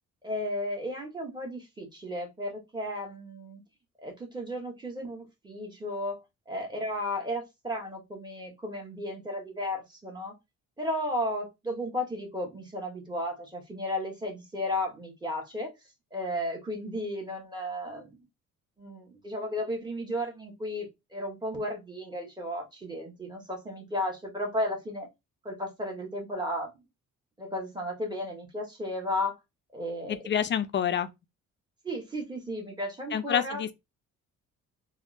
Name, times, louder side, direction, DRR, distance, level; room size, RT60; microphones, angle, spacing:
voice 1, 0.2-3.6 4.0-10.3 10.8-15.7 16.1-18.2 18.8-25.1 25.4-26.8 27.4-29.4 29.7-30.2 31.8-33.6, left 1 dB, 15° right, 1.2 m, -34 dB
voice 2, 30.1-31.1 33.1-33.8, left 9 dB, 40° left, 0.4 m, -28 dB
3.4 x 2.1 x 2.5 m
cardioid pair, 90°, 30 cm